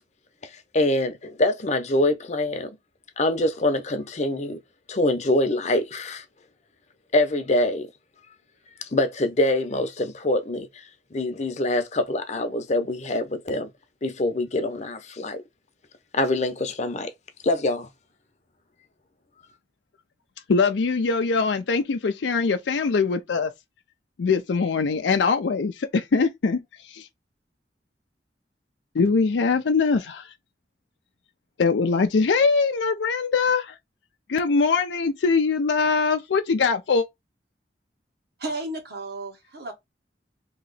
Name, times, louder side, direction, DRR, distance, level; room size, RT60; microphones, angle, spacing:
voice 1, 0.7-2.8 3.2-4.6 4.9-6.2 7.1-7.9 8.9-10.8 11.1-13.7 14.0-15.4 16.1-17.1 17.4-17.9, left 1 dB, 40° left, 0.8 m, -24 dB
voice 2, 20.5-23.5 24.2-27.1 28.9-30.3 31.6-33.7 34.3-37.1, left 4 dB, 90° left, 0.5 m, -22 dB
voice 3, 38.4-39.7, right 2 dB, 65° right, 1.5 m, -33 dB
3.0 x 2.9 x 4.0 m
head